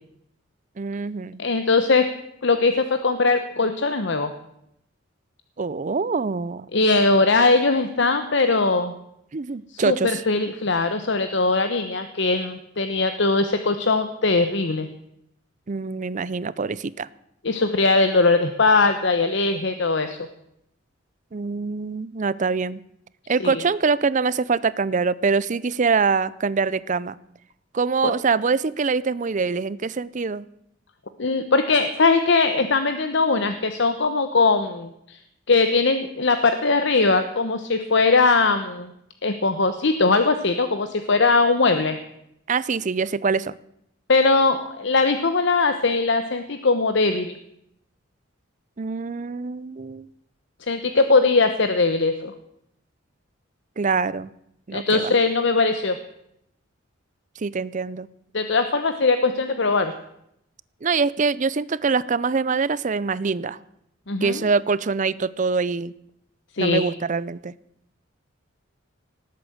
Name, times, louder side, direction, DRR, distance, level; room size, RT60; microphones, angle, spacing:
voice 1, 0.8-1.4 5.6-6.7 9.3-10.2 15.7-17.1 21.3-22.8 23.3-27.2 27.7-30.5 42.5-43.6 48.8-50.1 53.8-54.3 54.7-55.2 57.4-58.1 60.8-63.6 64.2-65.9 66.6-67.5, right 4 dB, 40° right, 19 dB, 0.5 m, -24 dB
voice 2, 1.4-2.1 2.4-4.3 6.7-8.9 9.7-14.9 17.4-20.2 23.4-23.6 28.0-28.1 31.2-35.2 35.5-38.9 39.2-42.0 44.1-47.4 50.7-52.3 54.7-56.0 58.3-59.9 64.1-64.4 66.6-66.8, left 3 dB, 60° left, 9 dB, 1.0 m, -20 dB
18.5 x 8.5 x 7.8 m, 0.77 s
head